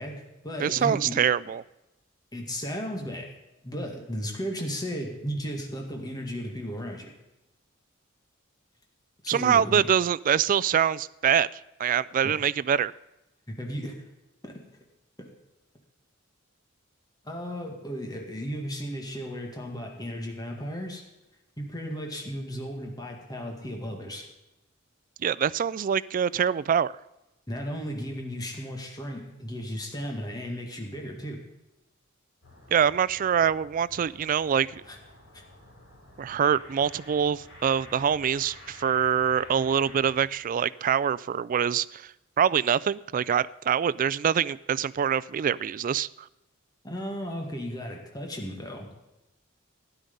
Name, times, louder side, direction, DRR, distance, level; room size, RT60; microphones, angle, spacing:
voice 1, 0.0-1.2 2.3-3.3 3.6-7.1 9.2-9.8 12.2-12.4 13.5-14.0 14.4-14.6 15.2-15.3 17.2-21.0 21.6-24.3 27.5-31.4 34.9-35.0 35.3-35.4 46.8-48.9, equal, 20° left, 2 dB, 2.0 m, -35 dB
voice 2, 0.6-1.6 9.3-11.5 11.8-12.9 25.2-26.9 32.7-34.8 36.2-42.1 42.4-46.3, right 8 dB, 40° right, 17 dB, 0.3 m, -25 dB
sound 1, 32.4-40.3, left 1 dB, 80° left, 5.3 m, -50 dB
12.5 x 10.5 x 5.4 m, 0.94 s
head